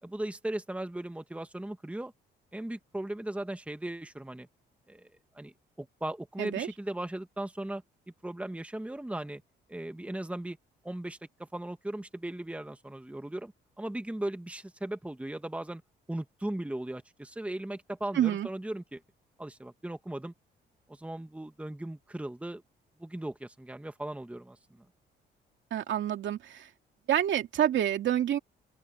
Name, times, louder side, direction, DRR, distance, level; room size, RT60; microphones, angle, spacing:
voice 1, 0.0-2.1 2.5-4.5 4.9-7.8 8.2-9.4 9.7-10.6 10.8-15.8 16.1-19.0 19.4-20.3 20.9-22.6 23.0-24.9, right 1 dB, 5° right, 1.6 m, -38 dB
voice 2, 18.1-18.5 25.7-26.7 27.1-28.4, right 11 dB, 70° right, 2.6 m, -28 dB
cardioid pair, 90°, 20 cm